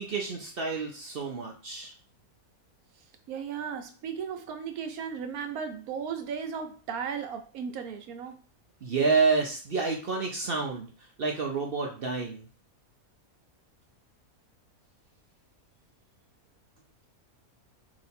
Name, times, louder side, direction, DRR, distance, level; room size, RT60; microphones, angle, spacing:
voice 1, 0.0-1.9 8.8-10.9 11.2-12.5, right 4 dB, 55° right, 0.7 m, -29 dB
voice 2, 3.3-8.4, right 6 dB, 80° right, 1.1 m, -36 dB
3.3 x 2.9 x 4.2 m
omnidirectional pair, 1.5 m